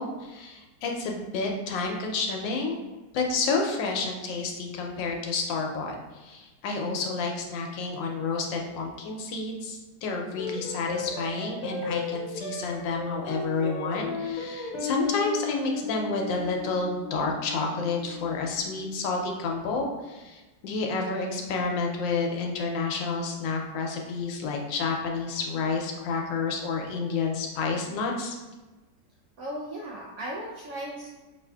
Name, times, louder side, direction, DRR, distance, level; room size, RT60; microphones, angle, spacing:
voice 1, 0.0-2.8 3.1-28.4, left 4 dB, 80° left, 1 dB, 1.3 m, -30 dB
sound 1, 10.4-19.0, left 4 dB, 55° left, 0.9 m, -35 dB
voice 2, 29.4-31.1, right 1 dB, 75° right, -4 dB, 0.8 m, -36 dB
4.7 x 2.5 x 2.2 m, 1.2 s
omnidirectional pair, 2.0 m